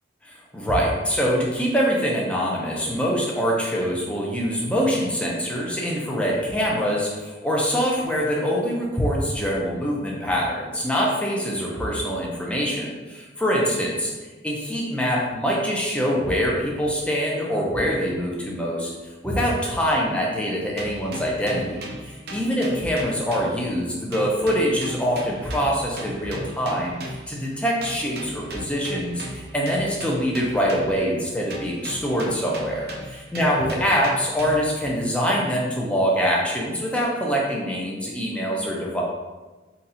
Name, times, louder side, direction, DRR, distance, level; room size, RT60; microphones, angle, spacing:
voice 1, 0.2-14.1 14.4-18.9 19.2-32.9 33.3-39.0, equal, 5° left, -3 dB, 0.7 m, -24 dB
sound 1, 20.8-23.9 24.1-27.4 27.8-31.1 31.5-34.8, right 1 dB, 55° right, 0.6 m, -37 dB
4.1 x 2.5 x 4.2 m, 1.2 s
head